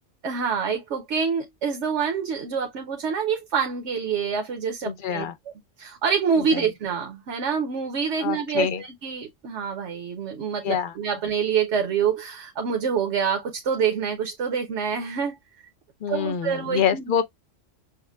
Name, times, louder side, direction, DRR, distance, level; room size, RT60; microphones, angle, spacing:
voice 1, 0.2-5.3 5.8-15.4 16.1-17.0, right 6 dB, 70° right, 1.1 m, -26 dB
voice 2, 4.8-5.3 6.4-6.6 8.2-8.8 10.6-10.9 16.0-17.2, left 8 dB, 60° left, 0.6 m, -26 dB
6.4 x 2.1 x 2.3 m
omnidirectional pair, 1.3 m